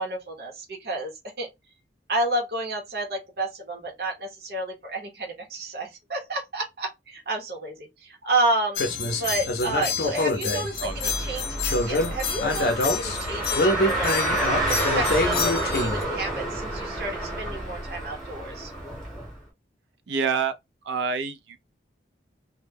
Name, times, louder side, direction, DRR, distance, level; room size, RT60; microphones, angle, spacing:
voice 1, 0.0-1.5 2.1-8.8 9.2-11.5 11.9-14.1 14.7-18.7, right 2 dB, 60° right, 0.8 m, -30 dB
sound 1, 8.8-16.0, left 2 dB, 60° left, 0.5 m, -26 dB
Car, 10.8-19.3, right 1 dB, ahead, 0.9 m, -29 dB
voice 2, 10.8-11.1 20.1-20.6 20.8-21.6, right 5 dB, 80° right, 0.4 m, -27 dB
2.1 x 2.1 x 3.2 m
head